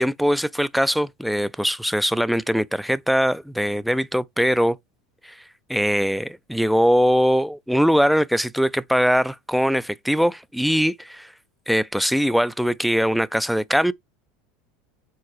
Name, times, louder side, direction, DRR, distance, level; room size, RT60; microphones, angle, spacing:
voice 1, 0.0-4.8 5.2-5.4 5.7-11.3 11.7-13.9, equal, ahead, 0.4 m, -21 dB
4.6 x 3.6 x 3.2 m
hypercardioid pair, 90°, 0 cm